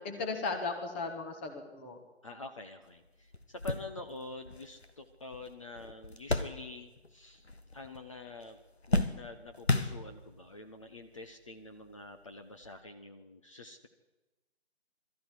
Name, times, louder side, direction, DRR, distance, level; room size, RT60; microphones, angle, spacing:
voice 1, 0.0-2.0, left 4 dB, 10° left, 4 dB, 1.3 m, -36 dB
voice 2, 2.2-7.5 7.7-8.6 8.9-13.9, left 2 dB, 30° left, 4 dB, 1.0 m, -47 dB
sound 1, 2.8-2.9 3.3-7.1 7.4-8.1 8.4-10.5 11.2-11.3 12.6-12.8, left 2 dB, 75° left, 1.8 m, -34 dB
21.5 x 13.5 x 9.9 m, 1.1 s
figure-of-eight pair, 155°, 33 cm